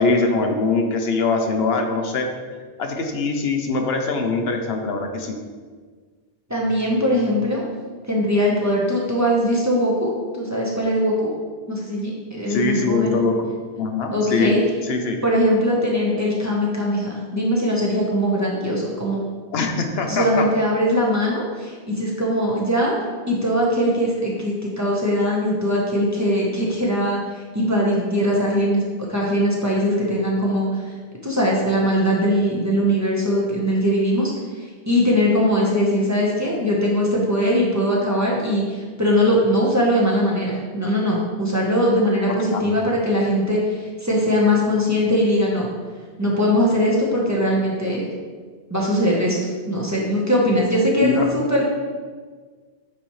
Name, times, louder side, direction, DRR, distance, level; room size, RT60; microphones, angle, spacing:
voice 1, 0.0-2.3 2.8-5.4 12.5-14.6 14.8-15.2 19.5-20.5 42.3-43.0 51.0-51.3, left 3 dB, 75° left, 4 dB, 1.0 m, -23 dB
voice 2, 6.5-7.6 8.1-11.3 11.7-13.2 14.1-14.6 15.2-19.2 20.1-23.0 23.3-27.2 27.5-28.8 29.1-30.7 31.2-34.3 34.9-45.7 46.2-48.1 48.7-49.4 49.7-51.6, equal, 15° right, -4 dB, 1.0 m, -21 dB
8.8 x 4.2 x 3.1 m, 1.5 s
omnidirectional pair, 1.1 m